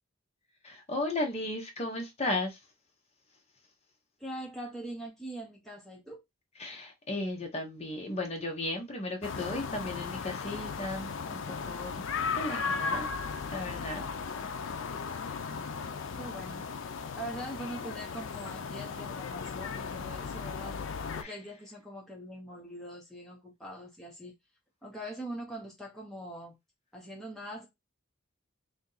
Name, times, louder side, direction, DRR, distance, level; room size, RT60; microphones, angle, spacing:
voice 1, 0.6-2.6 6.6-12.0 12.3-13.1 13.5-14.1 21.2-21.3, left 2 dB, 30° left, 0.9 m, -35 dB
voice 2, 4.2-6.2 16.2-16.7 17.1-20.8 21.2-24.3 24.8-26.6 26.9-27.7, right 1 dB, ahead, 0.6 m, -42 dB
sound 1, 9.2-21.2, left 5 dB, 60° left, 0.4 m, -36 dB
2.8 x 2.6 x 3.8 m
head